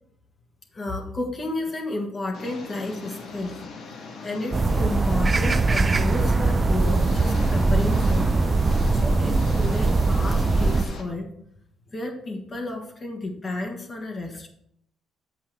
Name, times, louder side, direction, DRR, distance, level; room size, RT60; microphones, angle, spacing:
voice 1, 0.7-8.6 8.9-11.3 11.9-14.5, left 2 dB, 35° left, 1 dB, 1.5 m, -32 dB
Engine, 2.3-11.0, left 4 dB, 75° left, 1.6 m, -40 dB
sound 1, 4.5-10.8, right 3 dB, 30° right, 0.5 m, -21 dB
7.2 x 5.6 x 4.5 m, 0.71 s
cardioid pair, 90°, 0 cm